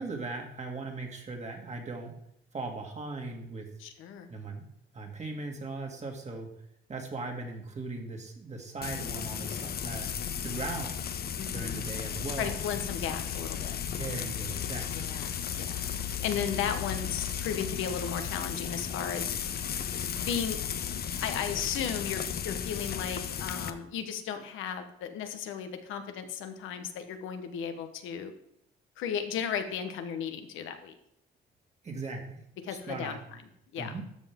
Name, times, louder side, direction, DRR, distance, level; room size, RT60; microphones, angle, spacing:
voice 1, 0.0-2.1 2.5-3.7 4.3-4.7 4.9-6.5 6.9-10.1 10.4-11.0 11.5-12.6 14.0-15.1 31.8-32.4 32.7-33.2 33.8-34.1, right 3 dB, 35° right, 2 dB, 2.2 m, -38 dB
voice 2, 3.8-4.3 11.4-11.9 12.4-13.8 14.9-15.9 16.2-19.3 20.1-20.6 21.2-28.3 29.0-30.9 32.6-33.2 33.7-33.9, left 8 dB, 90° left, 7 dB, 1.1 m, -35 dB
Frying (food), 8.8-23.7, left 8 dB, 50° left, 0.7 m, -35 dB
12.5 x 5.7 x 3.6 m, 0.73 s
cardioid pair, 90°, 20 cm